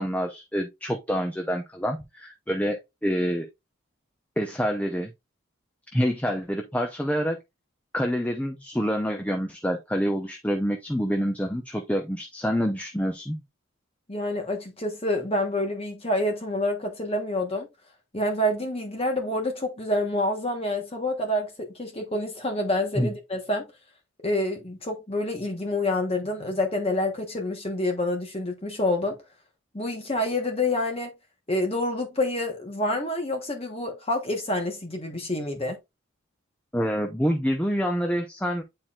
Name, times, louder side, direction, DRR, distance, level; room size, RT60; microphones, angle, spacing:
voice 1, 0.0-3.5 4.4-5.1 5.9-7.4 7.9-13.4 23.0-23.1 36.7-38.6, equal, 5° left, 0.7 m, -27 dB
voice 2, 14.1-17.7 18.1-23.7 24.2-29.2 29.7-31.1 31.5-35.8, left 1 dB, 25° left, 1.3 m, -27 dB
9.4 x 4.4 x 2.5 m
head